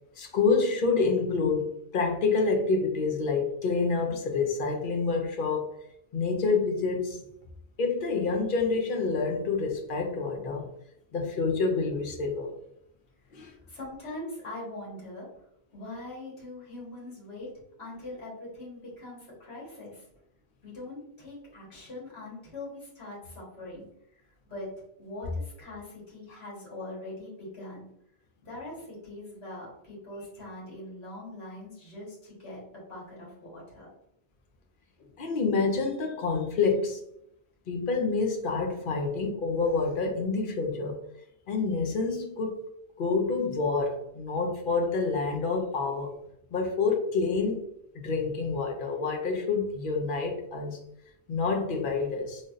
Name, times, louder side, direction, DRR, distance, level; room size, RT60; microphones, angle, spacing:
voice 1, 0.2-5.7 6.1-7.2 7.8-10.7 11.1-12.5 13.3-13.5 35.2-37.0 37.7-41.0 41.5-42.6 43.0-46.1 46.5-47.6 48.0-50.8 51.3-52.4, left 4 dB, 60° left, 2 dB, 0.8 m, -27 dB
voice 2, 13.3-15.3 15.7-17.5 17.8-20.0 20.6-24.7 25.0-27.9 28.4-33.9, left 2 dB, 80° left, -5 dB, 1.6 m, -42 dB
3.4 x 2.7 x 2.4 m, 0.76 s
omnidirectional pair, 1.1 m